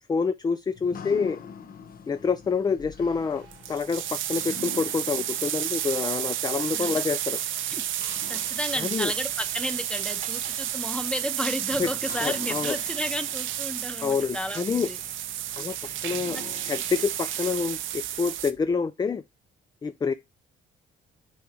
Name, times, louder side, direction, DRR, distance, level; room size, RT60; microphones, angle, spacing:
voice 1, 0.1-1.4 2.1-7.4 8.8-9.1 11.8-11.9 12.2-12.7 14.0-14.9 15.6-15.8 16.0-16.4 16.6-19.2 19.8-20.1, left 5 dB, 20° left, 0.4 m, -27 dB
sound 1, 0.7-18.5, left 5 dB, 45° left, 1.0 m, -46 dB
sound 2, 3.1-3.2 3.4-18.5, right 12 dB, 80° right, 0.7 m, -31 dB
Rattle, 7.7-18.7, right 6 dB, 40° right, 1.0 m, -48 dB
voice 2, 8.3-15.0 15.6-15.7 16.3-16.4, equal, 5° left, 0.9 m, -33 dB
7.0 x 4.8 x 2.8 m
cardioid pair, 90°, 20 cm